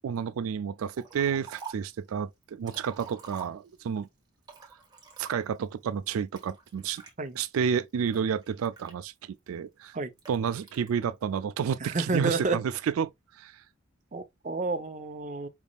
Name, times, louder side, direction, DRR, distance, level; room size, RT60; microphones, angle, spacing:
voice 1, 0.0-4.1 5.2-7.0 7.4-9.9 10.3-13.1 13.3-13.6, right 7 dB, 85° right, 0.3 m, -30 dB
Liquid, 0.9-2.0 2.4-4.0 4.4-5.7 6.4-7.1 7.7-9.4 10.2-10.9, right 6 dB, 20° right, 1.2 m, -47 dB
voice 2, 11.8-12.6 14.1-15.5, right 3 dB, 35° right, 0.6 m, -30 dB
5.0 x 3.5 x 2.3 m
head